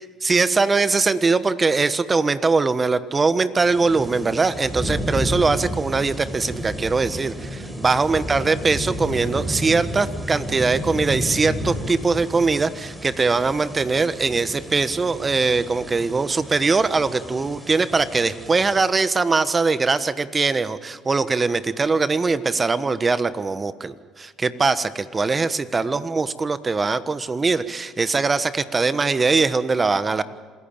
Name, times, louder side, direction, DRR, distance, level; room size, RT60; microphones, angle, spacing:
voice 1, 0.2-30.2, right 4 dB, 30° right, 13 dB, 1.3 m, -21 dB
sound 1, 3.6-18.8, equal, 5° right, 5.1 m, -32 dB
27.0 x 15.0 x 8.9 m, 1.5 s
supercardioid pair, 65°, 0 cm